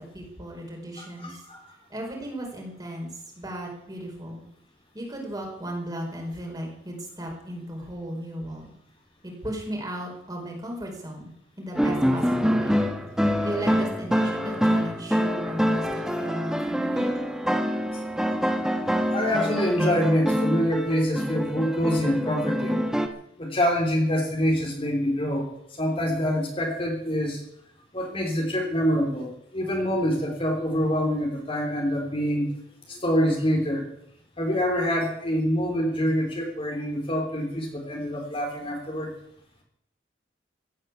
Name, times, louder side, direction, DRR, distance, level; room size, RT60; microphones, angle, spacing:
voice 1, 0.1-1.4 1.9-4.4 4.9-8.7 9.2-11.3 11.6-12.8 13.2-17.2, right 1 dB, 20° right, 0 dB, 5.1 m, -36 dB
voice 2, 1.0-1.6 17.9-18.0 19.1-22.8 23.4-25.5 25.8-27.4 27.9-32.5 32.9-33.8 34.4-39.1, equal, 30° left, 1 dB, 3.7 m, -25 dB
sound 1, 11.7-23.1, equal, 5° right, 1.4 m, -25 dB
16.0 x 9.8 x 8.5 m, 0.73 s
head